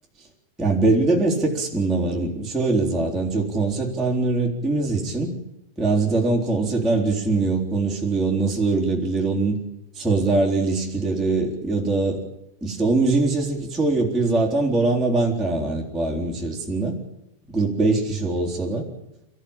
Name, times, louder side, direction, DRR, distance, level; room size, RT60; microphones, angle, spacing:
voice 1, 0.6-5.3 5.8-9.6 9.9-12.2 12.6-17.0 17.5-18.8, right 3 dB, ahead, -3 dB, 3.0 m, -22 dB
29.5 x 15.0 x 8.9 m, 0.94 s
omnidirectional pair, 5.4 m